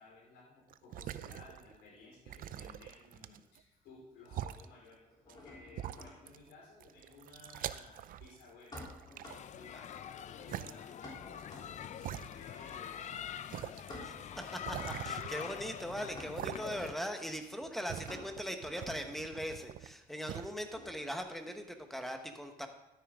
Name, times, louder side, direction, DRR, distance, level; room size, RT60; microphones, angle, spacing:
voice 1, 0.0-14.4, left 3 dB, 90° left, -5 dB, 4.7 m, -57 dB
sound 1, 0.7-1.8 2.3-3.6 4.3-4.7 5.3-5.4 5.8-6.5 6.8-8.4 8.8-9.8 10.5-10.7 11.4-11.5 12.0-12.8 13.0-13.1 13.5-13.9 14.7-15.8 16.4-17.0 17.3-19.9 20.3-20.5, right 12 dB, 55° right, 0.5 m, -44 dB
sound 2, 1.9-3.1 3.3-4.0 4.3-21.3, left 1 dB, 25° left, 3.4 m, -54 dB
sound 3, 9.3-16.9, left 9 dB, 45° left, 0.5 m, -45 dB
voice 2, 14.0-22.7, equal, ahead, 6 dB, 1.2 m, -40 dB
12.5 x 9.8 x 3.7 m, 0.98 s
cardioid pair, 110°, 17 cm